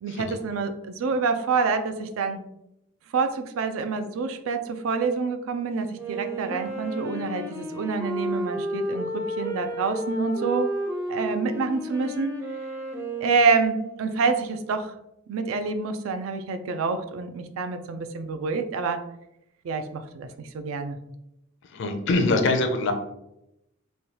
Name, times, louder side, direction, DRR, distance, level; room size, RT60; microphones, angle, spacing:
voice 1, 0.0-2.4 3.1-10.7 11.1-12.4 13.2-14.9 15.3-19.0 19.6-21.0, right 4 dB, 75° right, 8 dB, 0.3 m, -27 dB
Wind instrument woodwind instrument, 5.9-14.5, right 1 dB, 15° right, 0.5 m, -32 dB
voice 2, 21.7-22.9, left 2 dB, 65° left, 6 dB, 0.4 m, -23 dB
3.1 x 2.2 x 2.8 m, 0.84 s
head